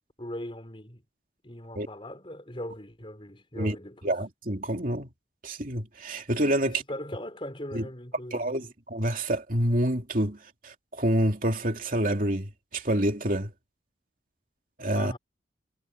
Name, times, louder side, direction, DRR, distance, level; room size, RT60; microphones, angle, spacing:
voice 1, 0.2-1.0 1.4-4.1 6.6-8.6 14.9-15.2, left 1 dB, 30° left, 4.7 m, -40 dB
voice 2, 4.0-5.1 5.4-6.8 7.7-7.8 8.3-13.5 14.8-15.1, right 1 dB, 45° right, 3.0 m, -27 dB
head